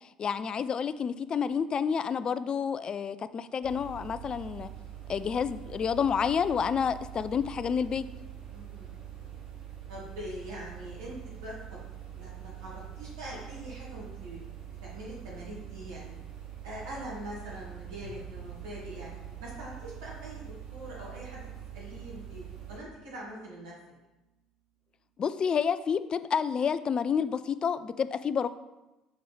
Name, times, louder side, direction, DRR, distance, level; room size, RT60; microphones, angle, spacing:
voice 1, 0.0-4.7 5.1-8.0 25.2-28.5, left 7 dB, 35° left, 13 dB, 0.3 m, -29 dB
sound 1, 3.6-22.8, right 10 dB, 45° right, 1.1 m, -44 dB
voice 2, 8.5-9.4 9.9-11.8 12.1-14.4 14.8-16.1 16.6-21.5 21.7-23.7, equal, 70° right, -5 dB, 2.1 m, -43 dB
sound 2, 18.0-23.8, right 3 dB, 80° left, 0.9 m, -54 dB
6.7 x 4.4 x 3.4 m, 1.0 s
figure-of-eight pair, 55°, 2 cm